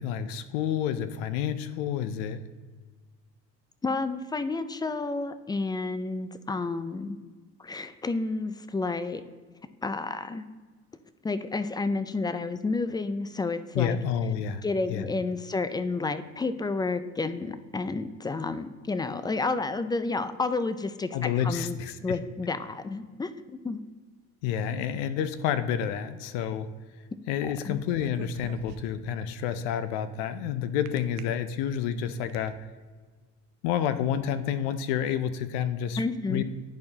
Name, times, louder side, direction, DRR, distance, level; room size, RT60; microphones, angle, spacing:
voice 1, 0.0-2.4 13.7-14.6 14.9-15.0 21.1-22.2 24.4-26.7 27.3-32.5 33.6-36.0 36.3-36.4, left 9 dB, 75° left, 12 dB, 0.6 m, -29 dB
voice 2, 3.8-7.2 7.6-9.2 9.8-10.4 11.2-14.0 14.6-23.8 27.6-27.8 36.0-36.4, left 3 dB, 10° left, 12 dB, 0.3 m, -30 dB
sound 1, 27.9-29.1 30.9-31.2 31.8-32.5, right 10 dB, 90° right, 0.5 m, -44 dB
10.5 x 4.3 x 2.8 m, 1.4 s
hypercardioid pair, 75°, 36 cm